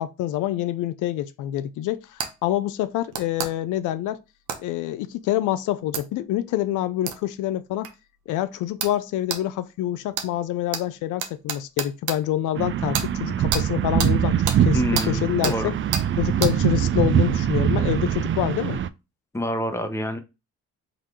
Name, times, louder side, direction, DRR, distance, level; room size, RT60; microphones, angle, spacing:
voice 1, 0.0-4.2 4.6-7.9 8.3-14.8 15.1-15.7 16.2-18.8, left 13 dB, 85° left, 0.5 m, -26 dB
sound 1, 2.2-2.3 3.1-3.5 4.5-4.6 5.9-6.0 7.1-7.2 7.8-7.9 8.8-9.0 9.3-9.4 10.1-10.3 10.7-10.8 11.2-12.2 12.9-13.1 13.5-13.6 14.0-14.1 14.5-14.6 14.9-15.1 15.4-15.6 15.9-16.1 16.4-16.5, right 7 dB, 80° right, 0.9 m, -28 dB
sound 2, 12.5-18.9, right 9 dB, 45° right, 0.4 m, -23 dB
voice 2, 14.4-15.7 19.3-20.2, equal, 10° left, 0.9 m, -27 dB
3.8 x 2.8 x 4.6 m
cardioid pair, 90°, 30 cm